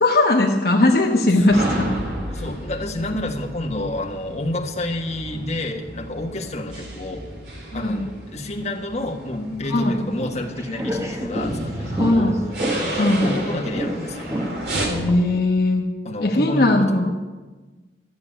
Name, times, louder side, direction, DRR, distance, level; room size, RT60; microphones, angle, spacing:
voice 1, 0.0-2.0 7.7-8.1 9.7-10.1 12.0-12.4 12.9-13.3 14.9-17.2, left 2 dB, 60° left, 0 dB, 1.1 m, -19 dB
sound 1, 1.3-14.9, right 1 dB, 65° right, 3.3 m, -32 dB
voice 2, 2.3-7.3 7.7-12.4 13.0-14.3 16.0-17.0, left 1 dB, 40° left, 1 dB, 1.5 m, -29 dB
sound 2, 10.1-15.4, equal, 15° right, 1.1 m, -30 dB
13.5 x 7.1 x 10.0 m, 1.3 s
head